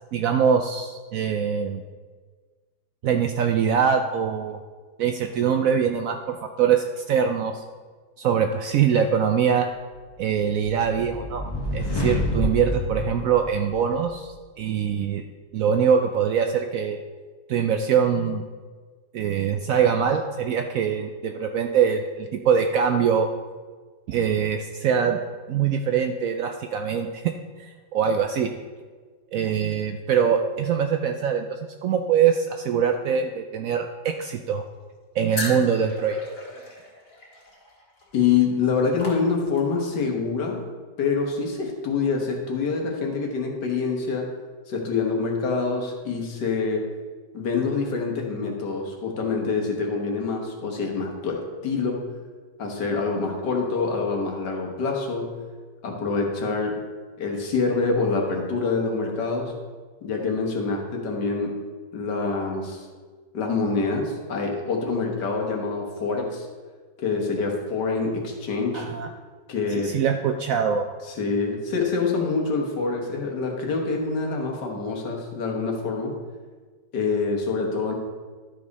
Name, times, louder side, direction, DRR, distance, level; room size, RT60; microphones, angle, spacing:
voice 1, 0.1-1.8 3.0-4.6 5.0-7.6 8.2-9.7 10.2-15.2 15.5-17.0 17.5-18.4 19.1-23.3 24.1-25.2 25.5-27.2 27.6-28.5 29.3-34.6 35.1-36.2 68.7-69.1 69.8-70.9, right 7 dB, 70° right, 5 dB, 0.8 m, -23 dB
sound 1, 10.2-14.0, left 1 dB, 20° left, 0.7 m, -28 dB
sound 2, 35.3-39.8, left 2 dB, 50° left, 2.2 m, -37 dB
voice 2, 38.1-40.6 41.0-44.3 44.7-46.9 47.3-52.1 52.6-55.3 55.8-56.8 57.2-59.5 60.0-61.6 61.9-62.9 63.3-66.5 67.0-68.9 69.5-70.0 71.1-76.1 76.9-77.9, left 4 dB, 75° left, 1 dB, 1.9 m, -26 dB
12.0 x 5.2 x 4.0 m, 1.5 s
omnidirectional pair, 1.8 m